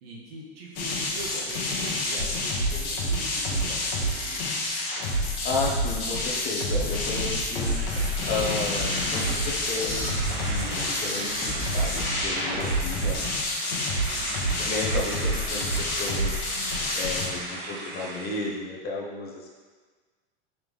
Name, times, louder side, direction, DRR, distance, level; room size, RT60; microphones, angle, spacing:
voice 1, 0.0-4.4 14.0-14.7, right 2 dB, 80° right, -4 dB, 1.1 m, -43 dB
sound 1, 0.8-17.3, left 1 dB, 70° left, 1.1 m, -28 dB
voice 2, 5.4-13.3 14.6-16.7 16.9-19.5, left 3 dB, 35° left, -2 dB, 0.8 m, -33 dB
sound 2, 6.8-13.2, right 1 dB, 10° left, 1.5 m, -36 dB
sound 3, 7.5-18.5, right 2 dB, 60° right, 1.0 m, -37 dB
3.9 x 3.3 x 3.5 m, 1.4 s
supercardioid pair, 115°, 29 cm